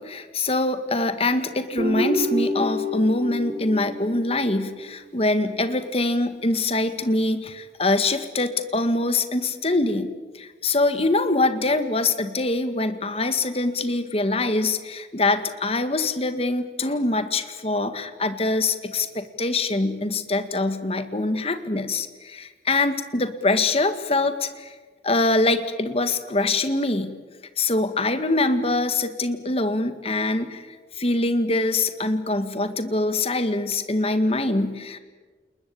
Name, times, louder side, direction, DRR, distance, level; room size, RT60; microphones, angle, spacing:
voice 1, 0.0-24.7 25.0-27.2 27.6-30.7 31.0-35.0, left 2 dB, 35° left, 10 dB, 1.8 m, -24 dB
Guitar, 1.8-5.1, left 1 dB, 45° right, 6.2 m, -28 dB
29.5 x 21.0 x 8.8 m, 1.4 s
head